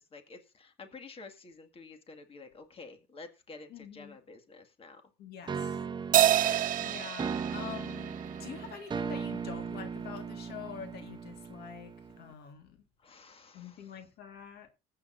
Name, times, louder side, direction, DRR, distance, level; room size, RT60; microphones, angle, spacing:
voice 1, 0.0-5.0 13.0-14.0, left 3 dB, 35° left, 1.9 m, -50 dB
voice 2, 3.7-4.2 5.2-5.8 6.8-8.1 8.4-12.8 13.5-14.7, left 8 dB, 70° left, 1.8 m, -46 dB
sound 1, 5.5-12.3, right 6 dB, 25° right, 0.8 m, -38 dB
Crash cymbal, 6.1-8.8, right 11 dB, 55° right, 1.0 m, -28 dB
20.0 x 8.6 x 2.6 m
cardioid pair, 110°, 17 cm